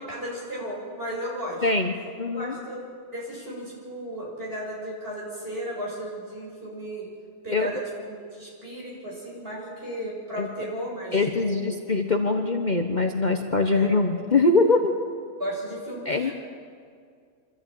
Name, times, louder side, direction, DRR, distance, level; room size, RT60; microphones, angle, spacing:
voice 1, 0.1-1.6 2.3-2.9 3.1-7.1 7.4-11.7 13.7-13.9 15.4-16.3, equal, 45° right, -4 dB, 6.7 m, -34 dB
voice 2, 1.6-1.9 2.2-2.5 7.5-7.7 10.4-10.5 11.1-14.9 16.1-16.3, left 3 dB, 35° left, 4 dB, 1.1 m, -22 dB
25.0 x 13.5 x 9.1 m, 2.2 s
omnidirectional pair, 1.4 m